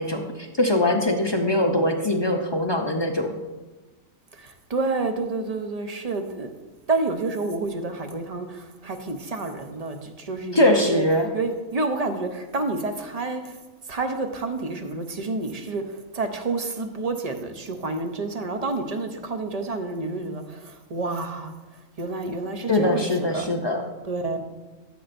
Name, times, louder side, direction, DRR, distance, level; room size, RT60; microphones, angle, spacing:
voice 1, 0.0-3.3 10.5-11.3 22.7-23.8, left 1 dB, 45° left, 3 dB, 0.3 m, -22 dB
voice 2, 4.3-6.5 6.9-11.1 11.3-13.6 13.9-21.5 22.0-23.5 24.0-24.4, right 3 dB, 40° right, 6 dB, 0.6 m, -29 dB
13.0 x 7.1 x 2.6 m, 1.2 s
omnidirectional pair, 1.4 m